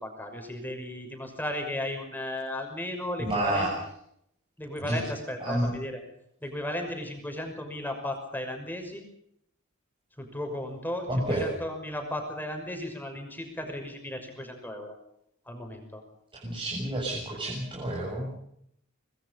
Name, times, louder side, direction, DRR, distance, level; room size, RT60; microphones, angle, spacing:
voice 1, 0.0-3.7 4.6-6.0 6.4-9.0 10.2-15.0 15.5-16.0, left 1 dB, 10° left, 4 dB, 6.2 m, -35 dB
voice 2, 3.2-3.7 4.9-5.0 5.4-5.7 11.1-11.5 16.4-18.4, right 1 dB, 25° right, -4 dB, 7.0 m, -29 dB
25.0 x 22.0 x 5.6 m, 0.72 s
head